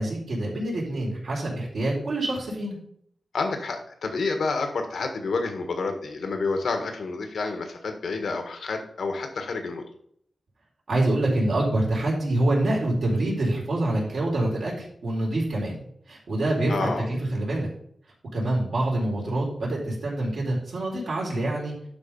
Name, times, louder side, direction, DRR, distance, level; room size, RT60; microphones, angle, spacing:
voice 1, 0.0-2.8 10.9-17.7 18.3-21.7, right 1 dB, 75° right, -4 dB, 4.0 m, -26 dB
voice 2, 3.3-9.8 16.7-17.0, left 3 dB, 85° left, 5 dB, 1.5 m, -29 dB
11.5 x 3.9 x 5.4 m, 0.67 s
wide cardioid pair, 95°, 0 cm